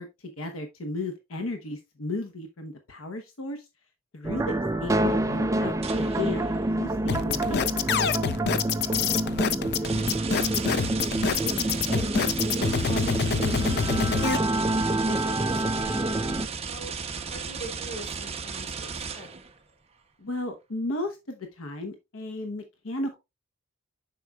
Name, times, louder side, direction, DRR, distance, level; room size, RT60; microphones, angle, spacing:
voice 1, 0.0-3.7 4.1-4.5 4.8-7.7 20.2-23.2, left 2 dB, 85° left, 0.9 m, -34 dB
sound 1, 4.2-16.5, right 1 dB, 15° right, 0.4 m, -27 dB
sound 2, 5.8-6.8 9.8-19.6, right 5 dB, 30° right, 0.8 m, -35 dB
sound 3, 7.1-14.4, left 7 dB, 55° left, 0.5 m, -26 dB
voice 2, 8.6-10.1 11.4-13.2 13.4-13.6 13.9-14.8 15.0-16.9 17.3-18.9 19.1-19.3, right 1 dB, 35° left, 3.3 m, -43 dB
7.7 x 5.8 x 2.3 m
head